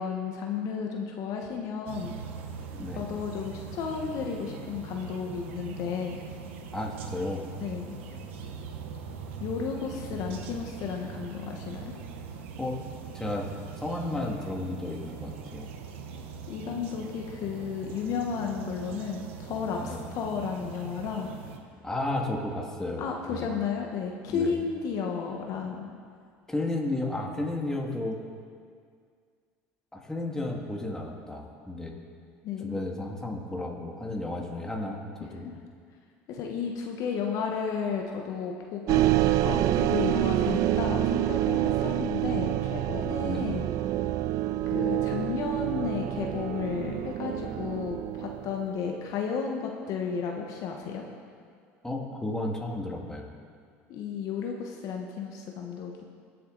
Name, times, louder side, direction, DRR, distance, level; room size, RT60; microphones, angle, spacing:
voice 1, 0.0-2.1 2.9-6.2 7.6-8.0 9.4-11.9 16.5-21.3 23.0-25.9 32.4-32.8 35.2-35.6 36.3-43.7 44.7-51.0 53.9-56.0, left 6 dB, 60° left, 2 dB, 1.2 m, -33 dB
sound 1, 1.9-21.6, right 6 dB, 85° right, 1.0 m, -41 dB
voice 2, 2.7-3.1 6.7-7.5 12.6-12.8 13.1-13.5 13.8-15.7 19.8-20.0 21.8-23.5 24.3-24.5 26.5-28.2 29.9-31.9 32.6-35.5 43.2-43.5 51.8-53.3, left 2 dB, 10° left, -1 dB, 2.1 m, -33 dB
sound 2, 38.9-48.6, right 14 dB, 60° right, 0.4 m, -27 dB
20.5 x 7.7 x 4.0 m, 2.1 s
supercardioid pair, 90°, 6 cm